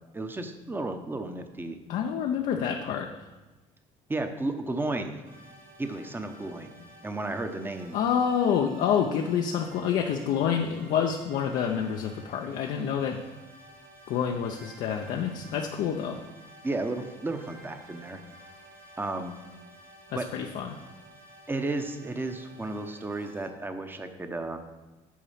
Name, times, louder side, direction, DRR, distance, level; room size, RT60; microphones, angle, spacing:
voice 1, 0.1-1.8 2.7-2.8 4.1-5.2 5.8-6.7 7.0-8.0 15.5-15.6 16.6-18.2 19.0-19.3 20.1-20.2 21.5-24.6, right 2 dB, 15° right, 7 dB, 0.8 m, -33 dB
voice 2, 1.9-3.1 7.9-13.2 14.1-16.2 20.1-20.8, left 8 dB, 70° left, 2 dB, 0.6 m, -28 dB
sound 1, 5.2-23.5, right 1 dB, 70° right, 2.0 m, -52 dB
8.6 x 4.1 x 5.6 m, 1.1 s
supercardioid pair, 90°, 14 cm